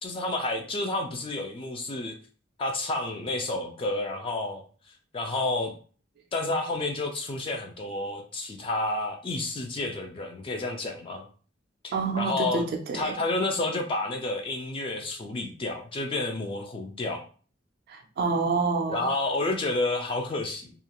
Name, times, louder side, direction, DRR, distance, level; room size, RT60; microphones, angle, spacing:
voice 1, 0.0-2.1 2.6-4.6 5.1-5.7 6.3-11.3 11.8-12.6 12.9-17.2 18.9-20.7, left 2 dB, 30° left, 4 dB, 0.3 m, -30 dB
voice 2, 11.9-13.2 17.9-19.1, right 4 dB, 55° right, 4 dB, 0.4 m, -28 dB
2.4 x 2.2 x 2.8 m, 0.40 s
head